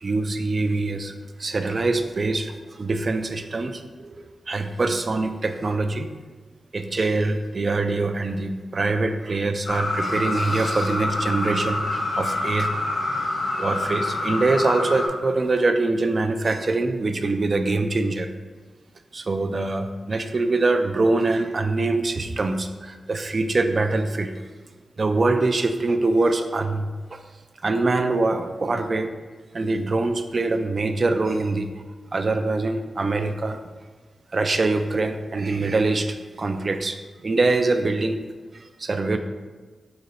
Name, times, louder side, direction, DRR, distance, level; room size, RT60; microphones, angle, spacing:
voice 1, 0.0-1.1 1.4-6.1 6.7-12.7 13.6-18.3 19.1-24.3 25.0-27.2 27.6-29.1 29.5-31.7 32.1-33.6 34.3-38.2 38.5-39.2, right 3 dB, 50° right, 7 dB, 0.4 m, -24 dB
sound 1, 9.7-15.1, left 2 dB, 70° left, 1.1 m, -26 dB
3.9 x 2.9 x 4.3 m, 1.4 s
cardioid pair, 65°, 0 cm